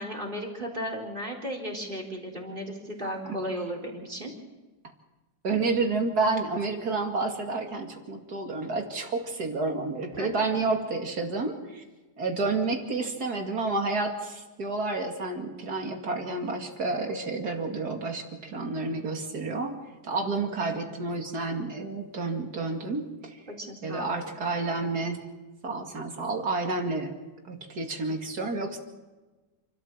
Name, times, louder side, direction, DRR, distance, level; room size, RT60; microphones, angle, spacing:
voice 1, 0.0-4.3 10.1-10.5 23.5-24.1, equal, 30° right, 2 dB, 4.1 m, -35 dB
voice 2, 5.4-11.8 12.2-23.4 23.8-25.3 25.6-27.2 27.4-28.8, right 3 dB, 70° right, 3 dB, 2.9 m, -30 dB
28.5 x 13.0 x 7.4 m, 1.2 s
omnidirectional pair, 1.8 m